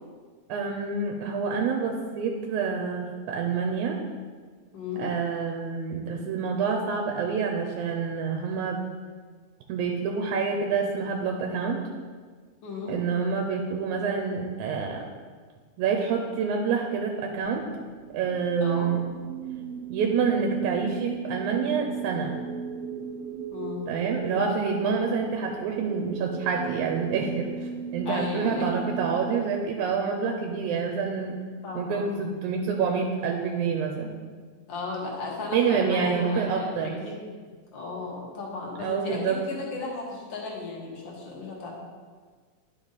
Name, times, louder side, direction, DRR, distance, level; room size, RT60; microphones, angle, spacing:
voice 1, 0.5-4.0 5.0-8.8 9.7-11.8 12.9-15.0 15.8-17.6 18.1-19.0 19.9-22.3 23.9-31.4 31.7-34.2 35.5-37.0 38.8-39.4, right 5 dB, 90° right, 2 dB, 2.1 m, -27 dB
voice 2, 4.7-5.1 12.6-13.0 18.6-18.9 23.5-23.9 28.1-28.7 31.6-32.2 34.7-37.5 37.7-41.7, left 3 dB, 45° left, -3 dB, 2.0 m, -35 dB
sound 1, 17.4-29.2, right 6 dB, 70° right, 1.5 m, -36 dB
10.5 x 5.4 x 4.1 m, 1.5 s
omnidirectional pair, 3.4 m